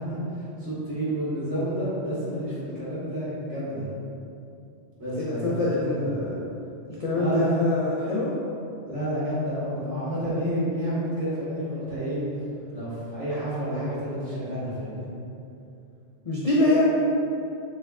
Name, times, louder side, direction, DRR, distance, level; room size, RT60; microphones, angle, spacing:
voice 1, 0.0-3.9 5.0-6.1 7.1-7.5 8.9-12.3 12.7-15.1, equal, 85° right, -11 dB, 1.8 m, -30 dB
voice 2, 5.2-6.4 7.0-8.3 16.2-16.8, left 2 dB, 65° left, -7 dB, 0.3 m, -24 dB
6.5 x 2.3 x 2.3 m, 2.7 s
omnidirectional pair, 1.2 m